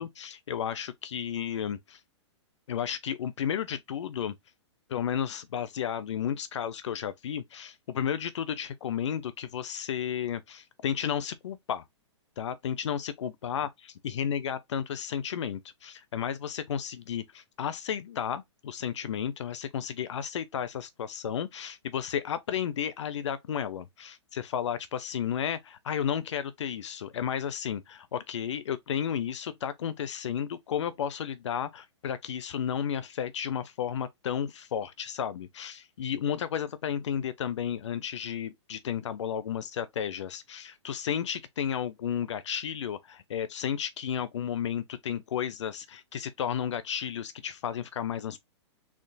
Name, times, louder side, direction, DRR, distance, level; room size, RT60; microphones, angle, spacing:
voice 1, 0.0-2.0 2.7-4.3 4.9-11.8 12.4-13.7 14.0-48.4, left 8 dB, 75° left, 0.6 m, -33 dB
3.8 x 3.6 x 2.2 m
hypercardioid pair, 140°, 15 cm